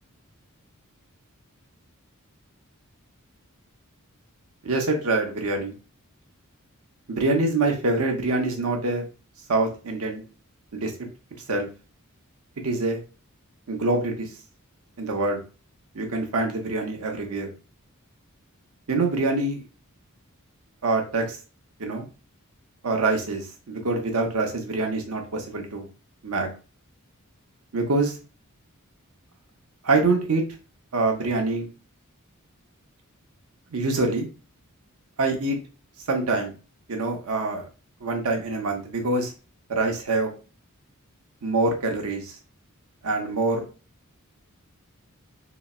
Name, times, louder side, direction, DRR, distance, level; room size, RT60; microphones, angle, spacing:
voice 1, 4.6-5.7 7.1-9.1 9.5-10.2 10.7-10.9 11.5-11.7 12.6-13.0 13.7-14.3 15.0-15.4 15.9-17.5 18.9-19.6 20.8-21.4 21.8-22.1 22.8-25.9 26.2-26.5 27.7-28.2 29.8-30.4 30.9-31.7 33.7-34.3 35.2-35.6 36.1-36.5 36.9-37.6 38.0-39.3 39.7-40.3 41.4-42.4 43.0-43.6, right 2 dB, 85° right, 2 dB, 0.8 m, -25 dB
3.9 x 2.0 x 2.3 m, 0.33 s
head